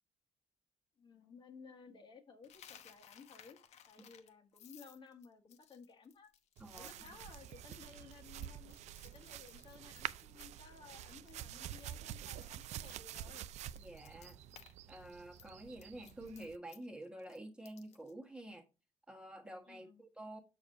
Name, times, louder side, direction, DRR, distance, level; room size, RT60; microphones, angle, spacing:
voice 1, 1.0-3.6 3.9-6.3 6.7-8.7 9.0-13.5 19.7-20.0, left 5 dB, 45° left, 1.4 m, -57 dB
Coin (dropping), 2.4-10.7 11.0-11.3 11.6-14.7 15.0-18.1, left 9 dB, 70° left, 1.0 m, -61 dB
voice 2, 6.6-6.9 13.8-14.4 14.9-18.7 19.1-20.4, right 1 dB, 10° right, 1.3 m, -49 dB
sound 1, 6.6-16.6, right 12 dB, 75° right, 0.4 m, -48 dB
7.0 x 6.5 x 2.7 m
cardioid pair, 135°, 12 cm